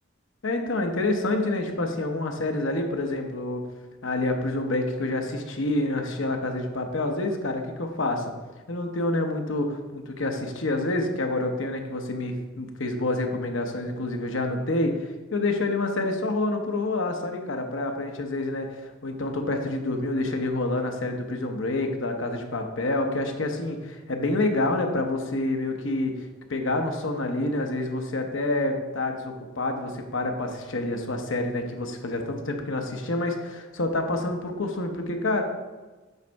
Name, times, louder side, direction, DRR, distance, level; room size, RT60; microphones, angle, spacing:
voice 1, 0.4-3.6 4.0-8.2 8.7-14.9 15.3-26.1 26.5-35.4, left 2 dB, 75° left, 4 dB, 0.9 m, -27 dB
8.1 x 5.2 x 3.5 m, 1.2 s
head